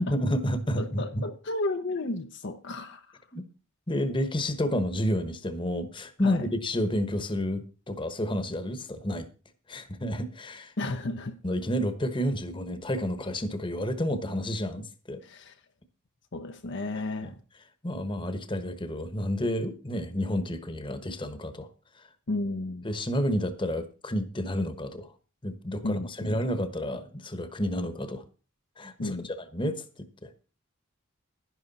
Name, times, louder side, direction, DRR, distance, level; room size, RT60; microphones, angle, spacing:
voice 1, 0.1-1.2 3.3-3.4 3.9-9.3 9.7-10.9 11.4-15.2 17.2-17.4 17.8-21.7 22.8-25.1 25.4-28.2 28.8-29.1 29.5-30.4, equal, 25° left, 1.1 m, -30 dB
voice 2, 0.8-3.2 6.2-6.5 10.8-11.4 15.2-15.6 16.3-17.4 22.3-23.0 25.8-26.4 29.0-29.3, left 2 dB, 55° left, 0.7 m, -33 dB
11.0 x 11.0 x 4.2 m
head